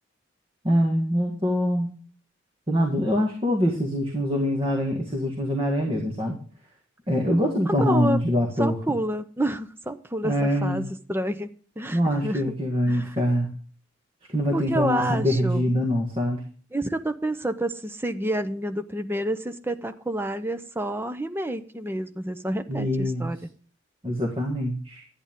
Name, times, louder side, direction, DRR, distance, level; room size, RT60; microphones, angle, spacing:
voice 1, 0.6-1.9 2.7-6.4 7.1-8.8 10.2-10.9 11.9-13.5 14.3-16.4 22.7-23.3 24.0-25.0, equal, 25° right, 1.7 m, -24 dB
voice 2, 7.7-8.2 8.6-11.5 11.8-12.5 12.9-13.1 14.5-15.6 16.7-23.4, right 1 dB, 10° right, 0.6 m, -29 dB
11.5 x 9.6 x 3.6 m
head